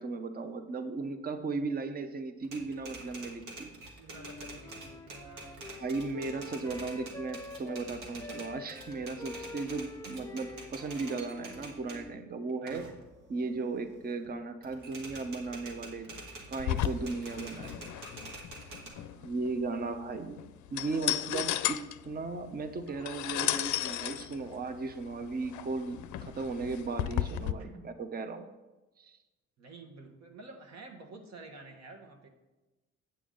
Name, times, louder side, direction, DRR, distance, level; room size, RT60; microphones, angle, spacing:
voice 1, 0.0-3.7 5.8-12.9 13.3-16.2 16.5-17.9 19.2-28.5 29.0-29.2, right 3 dB, 30° right, 9 dB, 0.7 m, -36 dB
Typewriter, 2.4-12.1 12.5-14.3 14.6-18.9, right 2 dB, 85° right, 1.8 m, -47 dB
voice 2, 3.9-5.7 12.6-12.9 18.7-19.3 27.6-27.9 29.6-32.3, right 3 dB, 60° right, 3 dB, 1.4 m, -50 dB
Wind instrument woodwind instrument, 4.1-7.9 8.2-12.3, left 3 dB, 10° left, 0.3 m, -47 dB
sound 1, 16.6-27.5, left 13 dB, 75° left, 0.5 m, -35 dB
8.8 x 6.9 x 3.8 m, 1.1 s
cardioid pair, 90°, 30 cm